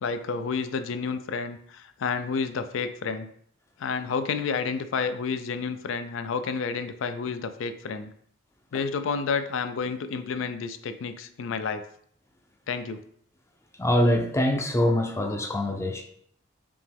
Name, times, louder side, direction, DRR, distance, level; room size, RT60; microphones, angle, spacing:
voice 1, 0.0-3.3 3.8-8.1 8.7-11.8 12.7-13.0, left 5 dB, 75° left, 0.4 m, -30 dB
voice 2, 13.8-16.0, left 1 dB, 15° left, 0.5 m, -24 dB
5.1 x 2.9 x 3.5 m
head